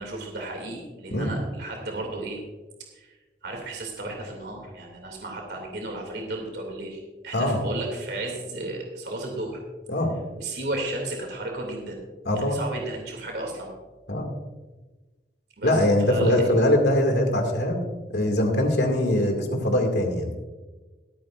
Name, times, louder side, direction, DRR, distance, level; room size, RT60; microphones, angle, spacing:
voice 1, 0.0-2.4 2.9-3.2 3.4-9.6 10.3-12.0 12.3-13.7 15.6-15.8 16.1-16.5, right 2 dB, 75° right, 1 dB, 2.6 m, -34 dB
voice 2, 12.3-12.6 14.1-14.3 15.6-17.8 18.1-20.3, left 1 dB, 80° left, 3 dB, 2.3 m, -22 dB
23.5 x 8.7 x 2.5 m, 1.2 s
head